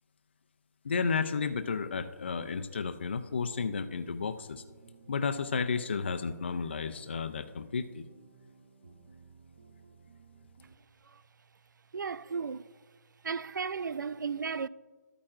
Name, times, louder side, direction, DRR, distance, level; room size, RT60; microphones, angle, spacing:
voice 1, 0.8-4.6 5.1-8.0, left 5 dB, 35° left, 0.4 m, -32 dB
sound 1, 3.2-10.8, right 4 dB, 35° right, 0.9 m, -57 dB
voice 2, 11.9-12.7 13.2-14.7, right 5 dB, 80° right, 0.4 m, -34 dB
13.0 x 8.7 x 2.4 m
hypercardioid pair, 170°, 10 cm